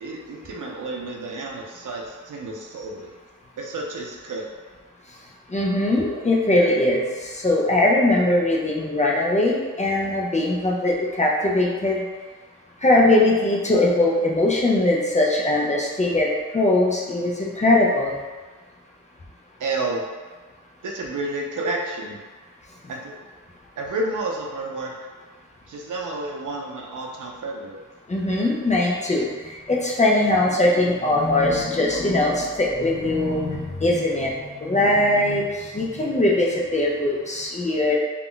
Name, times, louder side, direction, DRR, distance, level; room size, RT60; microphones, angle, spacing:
voice 1, 0.0-3.1 3.6-4.5 19.6-20.0 20.8-22.2 22.9-23.1 23.8-25.0 25.7-27.8, right 2 dB, 75° right, 0 dB, 0.5 m, -30 dB
voice 2, 5.5-12.0 12.8-18.2 28.1-34.3 34.6-38.0, left 1 dB, 25° left, -3 dB, 0.4 m, -21 dB
2.3 x 2.1 x 3.7 m, 1.3 s
wide cardioid pair, 130°, 31 cm